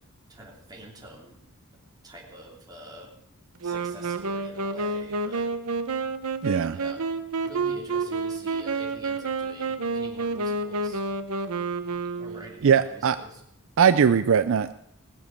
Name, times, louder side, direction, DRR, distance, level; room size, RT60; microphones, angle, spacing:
voice 1, 0.3-1.4 2.0-3.1 3.6-5.5 6.7-7.0 7.4-11.0 12.2-13.4, right 1 dB, 20° right, -2 dB, 3.0 m, -46 dB
Wind instrument woodwind instrument, 3.6-12.6, right 3 dB, 75° right, 0.8 m, -29 dB
voice 2, 6.4-6.8 12.6-13.2 13.8-14.7, right 7 dB, 60° right, 12 dB, 0.4 m, -20 dB
19.5 x 7.4 x 6.8 m, 0.75 s
head